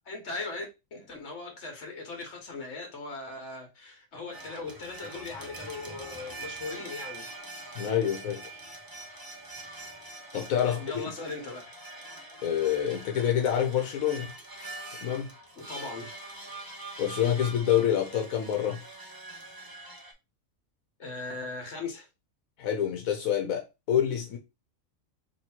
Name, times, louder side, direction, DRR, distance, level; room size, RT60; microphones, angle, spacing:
voice 1, 0.1-0.6 0.9-7.3 10.6-11.6 15.6-16.2 21.0-22.1, left 3 dB, 60° left, 1.5 m, -39 dB
sound 1, 4.3-20.1, right 2 dB, 20° right, 0.6 m, -44 dB
voice 2, 7.7-8.6 10.3-10.8 12.4-14.3 15.0-15.3 16.6-16.7 17.0-18.8 22.6-24.4, left 9 dB, 85° left, 1.2 m, -27 dB
3.1 x 3.0 x 4.3 m
omnidirectional pair, 1.4 m